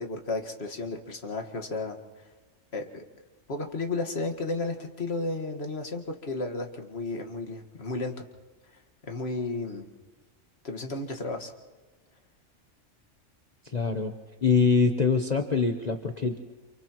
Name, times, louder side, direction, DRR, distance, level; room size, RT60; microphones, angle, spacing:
voice 1, 0.0-2.3 2.7-3.0 3.5-8.2 9.0-9.9 10.6-11.5, left 3 dB, 55° left, 4 dB, 2.0 m, -33 dB
voice 2, 13.6-14.1 14.4-16.4, left 4 dB, 35° left, 4 dB, 1.0 m, -24 dB
30.0 x 28.5 x 3.1 m, 1.3 s
omnidirectional pair, 1.3 m